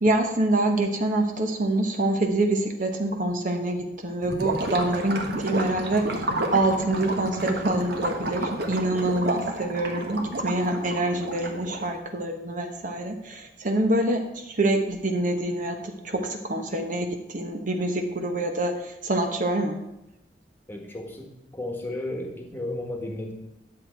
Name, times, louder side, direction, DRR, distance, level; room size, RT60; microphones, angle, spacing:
voice 1, 0.0-6.1 6.5-15.8 16.0-18.7 19.0-19.8, right 1 dB, 45° right, 4 dB, 1.0 m, -26 dB
Gurgling / Liquid, 4.2-12.0, right 1 dB, 60° right, 1.4 m, -30 dB
voice 2, 20.7-21.3 21.5-23.3, left 1 dB, 10° left, 2 dB, 1.5 m, -33 dB
10.5 x 7.7 x 4.5 m, 0.89 s
head